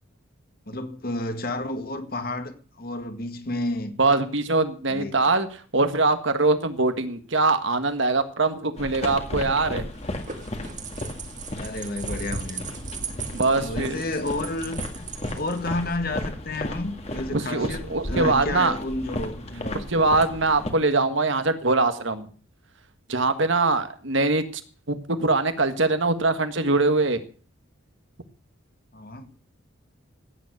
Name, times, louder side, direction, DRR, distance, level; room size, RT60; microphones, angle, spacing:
voice 1, 0.7-3.9 4.9-5.3 10.2-10.3 11.5-12.7 13.5-20.0 28.9-29.3, left 2 dB, 45° left, 2.0 m, -31 dB
voice 2, 4.0-5.5 5.7-9.9 13.3-14.0 17.3-18.7 19.9-22.3 23.1-24.4 24.9-27.2, right 3 dB, 65° right, 1.7 m, -22 dB
sound 1, 8.8-20.7, left 1 dB, 30° left, 2.0 m, -35 dB
sound 2, 9.9-16.0, right 5 dB, 35° right, 2.0 m, -38 dB
16.0 x 9.4 x 6.5 m
head